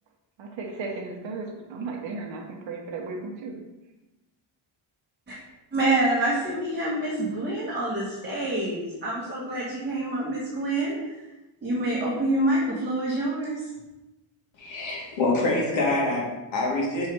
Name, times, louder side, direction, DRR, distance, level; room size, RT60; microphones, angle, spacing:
voice 1, 0.4-3.5, right 3 dB, 70° right, 2 dB, 1.4 m, -35 dB
voice 2, 5.7-11.0 11.6-13.6, right 1 dB, 20° right, -7 dB, 1.5 m, -26 dB
voice 3, 14.6-17.1, left 2 dB, 70° left, -3 dB, 2.3 m, -26 dB
6.7 x 4.5 x 4.7 m, 1.0 s
cardioid pair, 155°, 48 cm